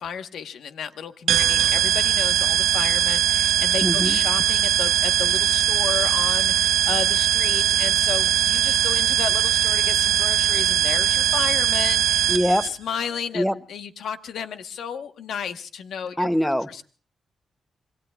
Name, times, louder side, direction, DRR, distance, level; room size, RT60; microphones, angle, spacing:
voice 1, 0.0-12.3 12.6-16.3 16.7-16.8, left 7 dB, 80° left, 8 dB, 1.2 m, -32 dB
sound 1, 1.3-12.7, right 10 dB, 85° right, 0.9 m, -21 dB
voice 2, 3.8-4.2 12.3-12.7 13.3-13.6 16.2-16.7, equal, 5° left, 12 dB, 0.7 m, -22 dB
26.5 x 23.0 x 2.4 m, 0.39 s
cardioid pair, 125°, 0 cm